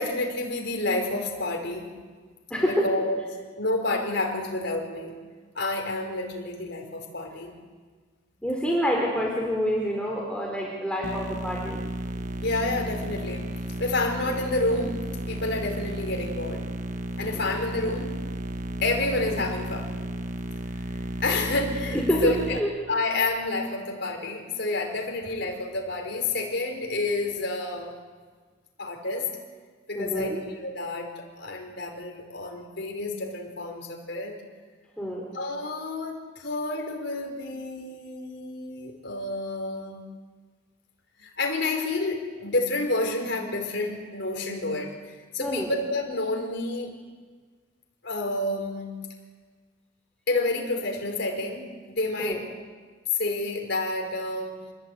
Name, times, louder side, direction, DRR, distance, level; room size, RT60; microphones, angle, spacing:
voice 1, 0.0-1.9 2.7-3.2 3.6-5.1 5.5-7.5 12.4-13.5 13.8-15.0 15.3-16.6 17.2-18.2 18.8-20.0 21.2-22.6 22.9-28.0 28.8-29.3 29.9-34.3 35.3-40.0 41.2-47.0 48.0-49.0 50.3-52.5 53.1-54.6, left 2 dB, 60° left, 2 dB, 5.0 m, -29 dB
voice 2, 2.5-2.8 8.4-11.8 17.3-17.4 20.9-21.0 22.1-22.7 29.9-30.4 35.0-35.2 45.4-45.7 52.2-52.4, equal, 5° left, -2 dB, 4.2 m, -27 dB
sound 1, 11.0-22.6, right 1 dB, 40° right, 1.3 m, -33 dB
27.0 x 21.0 x 9.3 m, 1.5 s
head